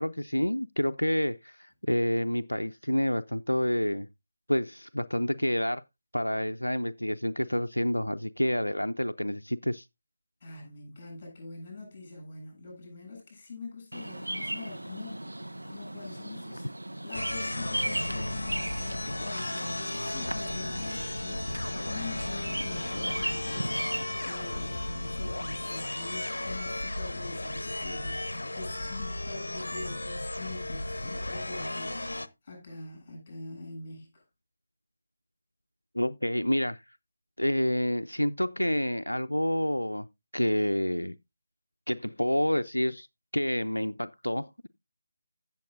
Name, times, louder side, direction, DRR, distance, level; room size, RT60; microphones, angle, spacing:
voice 1, 0.0-4.1 4.5-5.8 6.1-9.9 35.9-36.8 37.4-40.1 40.3-41.2 41.9-43.1 43.3-44.7, equal, 85° left, 0.4 m, -28 dB
voice 2, 10.4-15.2 15.7-16.7 17.0-32.0 32.4-34.2, left 3 dB, 30° left, 7.3 m, -44 dB
Bird vocalization bird call bird song, 13.9-24.0, right 1 dB, 80° right, 0.6 m, -37 dB
sound 1, 17.1-32.3, left 1 dB, 70° left, 0.8 m, -35 dB
15.5 x 7.1 x 2.5 m
figure-of-eight pair, 155°, 0 cm